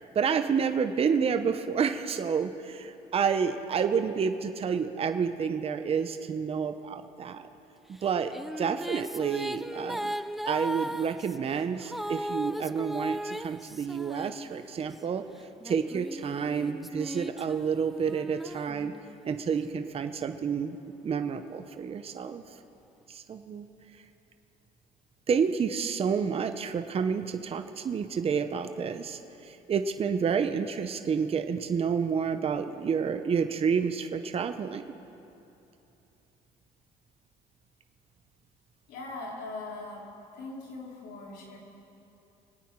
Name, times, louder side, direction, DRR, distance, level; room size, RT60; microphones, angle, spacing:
voice 1, 0.1-7.5 7.9-10.1 10.5-15.2 15.6-18.9 19.2-20.8 21.0-22.4 23.1-23.7 25.3-34.8, right 6 dB, 35° right, 8 dB, 0.7 m, -29 dB
sound 1, 8.0-15.0 15.6-19.4, equal, ahead, 0.3 m, -37 dB
voice 2, 38.9-40.1 40.3-41.6, left 2 dB, 85° left, -3 dB, 3.5 m, -40 dB
25.5 x 9.3 x 4.6 m, 2.9 s
cardioid pair, 110°, 17 cm